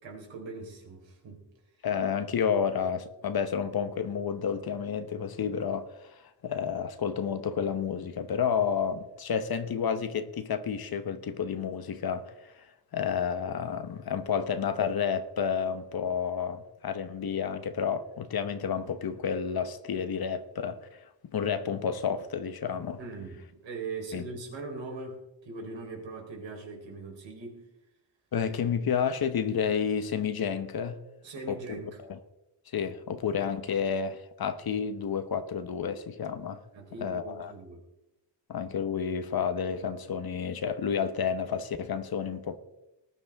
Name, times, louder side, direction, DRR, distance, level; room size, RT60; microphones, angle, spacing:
voice 1, 0.0-1.5 23.0-27.7 31.2-32.0 36.7-37.8, right 3 dB, 75° right, 4.3 m, -41 dB
voice 2, 1.8-12.5 12.9-20.8 21.2-23.0 24.1-24.2 28.3-31.0 31.5-31.8 32.1-32.2 32.7-36.6 37.0-37.5 38.5-42.6, left 7 dB, 55° left, 1.1 m, -30 dB
19.5 x 11.0 x 3.6 m
wide cardioid pair, 135°, 45 cm